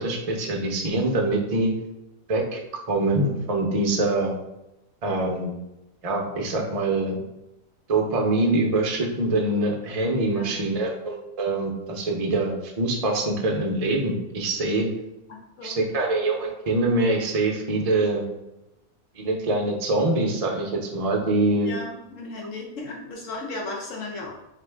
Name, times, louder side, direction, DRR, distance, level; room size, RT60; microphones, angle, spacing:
voice 1, 0.0-1.7 2.3-2.6 2.9-4.3 5.0-5.5 6.0-7.2 7.9-14.9 15.6-18.2 19.2-21.7, right 2 dB, 45° right, 1 dB, 0.5 m, -24 dB
voice 2, 10.2-10.6 15.3-15.8 21.6-24.3, left 2 dB, 65° left, -1 dB, 1.2 m, -35 dB
3.7 x 3.4 x 3.4 m, 0.90 s
omnidirectional pair, 1.5 m